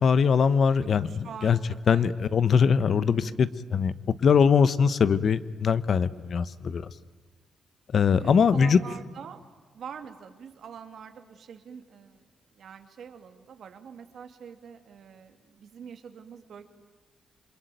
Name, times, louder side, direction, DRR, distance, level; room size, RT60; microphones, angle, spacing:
voice 1, 0.0-1.1 1.4-1.6 1.9-3.9 4.2-6.9 7.9-8.8, left 6 dB, 60° left, 15 dB, 1.0 m, -22 dB
voice 2, 0.8-2.2 3.0-3.4 8.1-9.4 9.7-12.2 12.5-16.7, right 7 dB, 70° right, 7 dB, 2.4 m, -45 dB
28.0 x 21.5 x 9.2 m, 1.4 s
cardioid pair, 65°, 0 cm